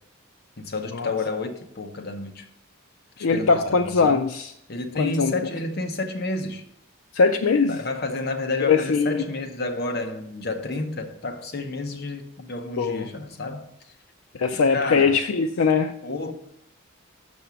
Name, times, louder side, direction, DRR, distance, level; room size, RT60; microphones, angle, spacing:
voice 1, 0.6-2.5 3.2-4.2 4.7-6.6 7.7-13.7 14.7-15.2 16.0-16.3, left 2 dB, 50° left, 0.8 m, -30 dB
voice 2, 3.2-4.5 5.0-5.3 7.1-7.8 8.6-9.2 12.8-13.1 14.3-15.9, left 5 dB, 75° left, 0.4 m, -21 dB
6.7 x 5.4 x 5.9 m
head